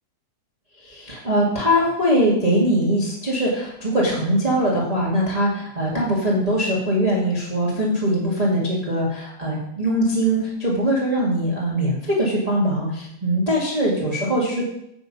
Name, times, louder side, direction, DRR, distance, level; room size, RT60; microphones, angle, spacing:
voice 1, 0.8-14.7, equal, 65° right, -5 dB, 0.4 m, -21 dB
8.5 x 6.1 x 5.4 m, 0.78 s
omnidirectional pair, 4.5 m